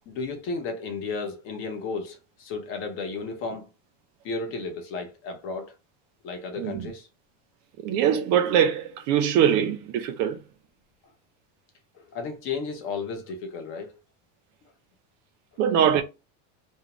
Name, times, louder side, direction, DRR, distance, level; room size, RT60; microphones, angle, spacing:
voice 1, 0.1-3.7 4.2-5.7 6.2-7.1 12.0-13.9, left 4 dB, 35° left, 0.6 m, -33 dB
voice 2, 6.6-6.9 7.8-10.4 15.6-16.0, right 9 dB, 45° right, 0.4 m, -22 dB
2.6 x 2.2 x 2.8 m
cardioid pair, 165°, 35 cm